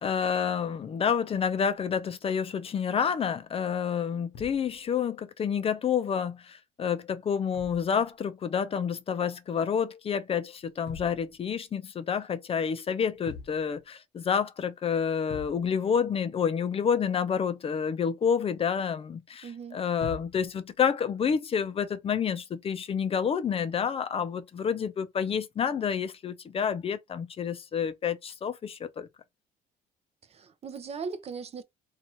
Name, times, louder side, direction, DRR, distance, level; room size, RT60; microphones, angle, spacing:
voice 1, 0.0-29.1, left 7 dB, 35° left, 0.5 m, -29 dB
sound 1, 4.3-4.9 7.5-8.2 10.5-11.5 13.1-13.9 14.3-14.4 14.7-14.8 15.3-15.9 20.0-20.6 21.8-22.0, left 6 dB, 80° left, 0.9 m, -45 dB
voice 2, 19.4-19.8 30.3-31.6, right 5 dB, 40° right, 0.5 m, -38 dB
2.7 x 2.4 x 2.8 m
cardioid pair, 110°, 17 cm